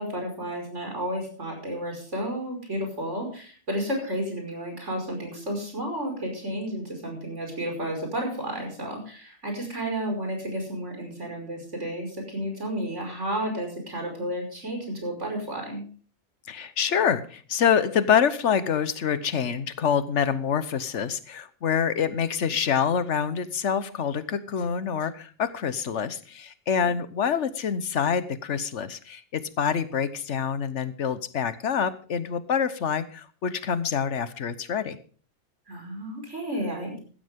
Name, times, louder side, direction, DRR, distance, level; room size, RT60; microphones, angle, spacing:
voice 1, 0.0-15.8 35.7-37.0, right 1 dB, 90° right, 2 dB, 5.8 m, -32 dB
voice 2, 16.5-35.0, left 7 dB, 80° left, 13 dB, 1.3 m, -26 dB
15.5 x 13.5 x 3.6 m, 0.41 s
omnidirectional pair, 1.2 m